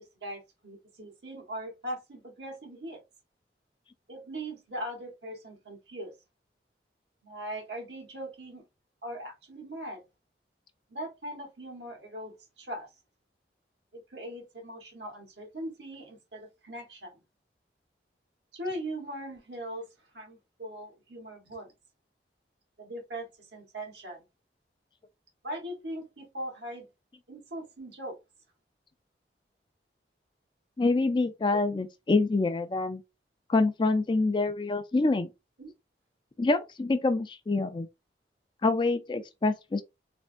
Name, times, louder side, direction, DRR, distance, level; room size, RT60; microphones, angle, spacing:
voice 1, 0.0-3.0 4.1-6.1 7.2-8.6 9.0-10.0 10.9-12.9 13.9-17.2 18.5-19.9 20.1-21.7 22.8-24.2 25.4-26.9 27.3-28.2 31.5-31.7 35.6-35.7, right 1 dB, 80° right, 1.2 m, -40 dB
voice 2, 30.8-33.0 33.5-35.3 36.4-37.9 38.6-39.8, left 3 dB, 25° left, 0.3 m, -26 dB
3.4 x 2.2 x 2.5 m
head